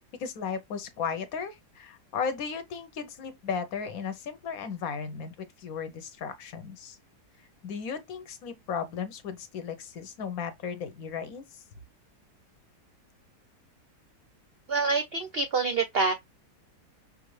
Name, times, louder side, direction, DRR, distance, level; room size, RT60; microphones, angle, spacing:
voice 1, 0.2-7.0 7.6-11.6, left 6 dB, 65° left, 1.1 m, -35 dB
voice 2, 14.7-16.1, right 4 dB, 70° right, 0.5 m, -26 dB
5.5 x 2.4 x 3.1 m
omnidirectional pair, 1.7 m